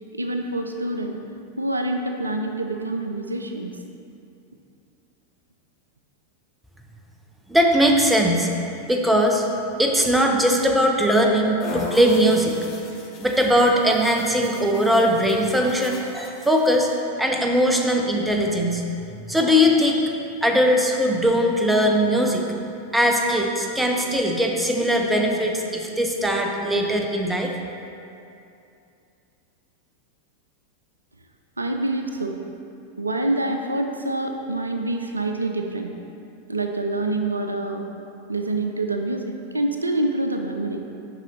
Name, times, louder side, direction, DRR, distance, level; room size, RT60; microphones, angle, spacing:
voice 1, 0.1-1.1 1.6-3.7 31.6-32.4 33.0-35.9 36.5-37.8 38.3-40.8, right 2 dB, 80° right, 4 dB, 0.4 m, -26 dB
voice 2, 7.5-8.5 8.9-9.5 9.8-12.6 13.2-16.9 17.2-18.8 19.2-20.1 20.4-22.4 22.9-27.5, equal, 5° right, 2 dB, 0.6 m, -20 dB
sound 1, 11.6-17.0, left 3 dB, 30° left, 0.8 m, -37 dB
7.5 x 5.4 x 3.1 m, 2.6 s
figure-of-eight pair, 90°, 0 cm